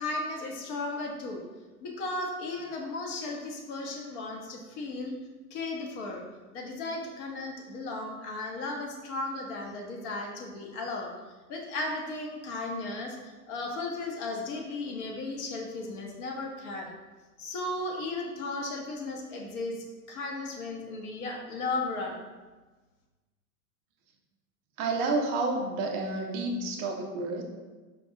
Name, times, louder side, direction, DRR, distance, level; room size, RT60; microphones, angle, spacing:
voice 1, 0.0-1.4 1.8-5.1 5.5-6.2 6.5-11.1 11.5-16.9 17.4-22.2, left 2 dB, 50° left, 1 dB, 0.9 m, -35 dB
voice 2, 24.8-27.4, right 3 dB, 25° right, 2 dB, 0.3 m, -30 dB
5.0 x 2.3 x 2.7 m, 1.3 s
hypercardioid pair, 100°, 45 cm